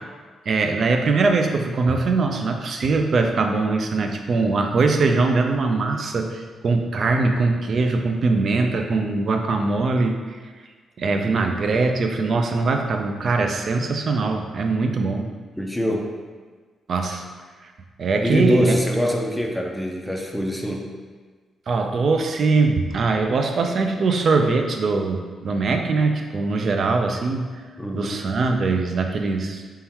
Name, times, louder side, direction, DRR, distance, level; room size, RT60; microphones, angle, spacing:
voice 1, 0.5-10.1 11.0-15.3 16.9-17.3 18.0-18.8 21.7-27.4 27.9-29.6, right 3 dB, 50° right, 4 dB, 0.4 m, -22 dB
voice 2, 15.6-16.2 18.2-20.9 27.8-28.2, equal, ahead, 0 dB, 0.5 m, -24 dB
4.4 x 3.6 x 2.9 m, 1.4 s
cardioid pair, 110°, 0 cm